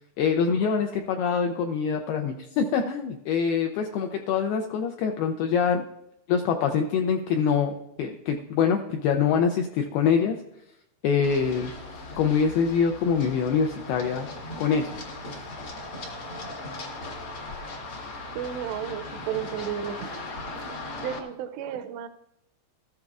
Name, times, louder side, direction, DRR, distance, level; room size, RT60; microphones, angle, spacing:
voice 1, 0.2-5.8 6.3-10.4 11.0-11.7 12.2-14.3 14.6-14.9, left 6 dB, 85° left, 4 dB, 2.2 m, -24 dB
Run, 11.2-21.2, left 2 dB, 65° left, 1.3 m, -38 dB
voice 2, 18.4-20.2 20.7-22.1, right 9 dB, 85° right, 9 dB, 2.6 m, -33 dB
14.5 x 14.0 x 2.4 m, 0.82 s
omnidirectional pair, 5.1 m